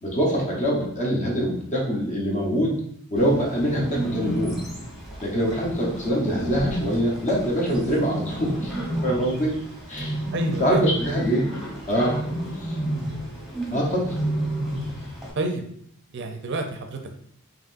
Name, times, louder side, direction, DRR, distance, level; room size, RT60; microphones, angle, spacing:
voice 1, 0.0-2.8 3.1-4.6 5.2-8.7 9.0-9.6 9.9-10.2 10.6-11.5 11.9-12.2 12.5-12.8 13.7-14.2, equal, 35° left, -2 dB, 1.0 m, -24 dB
Bird, 3.2-15.3, right 1 dB, ahead, 1.2 m, -31 dB
voice 2, 10.3-10.9 15.4-15.6 16.1-17.1, right 2 dB, 55° right, 5 dB, 0.5 m, -29 dB
5.2 x 3.0 x 2.6 m, 0.66 s
head